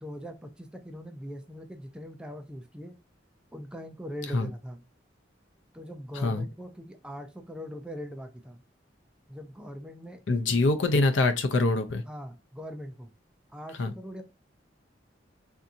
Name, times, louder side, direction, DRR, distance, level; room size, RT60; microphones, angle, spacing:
voice 1, 0.0-3.0 3.5-4.8 5.7-8.6 9.3-10.9 12.1-13.1 13.5-14.2, equal, 5° right, 0.4 m, -41 dB
voice 2, 10.3-12.0 13.8-13.9, left 2 dB, 80° left, 0.6 m, -24 dB
3.5 x 2.7 x 2.5 m
head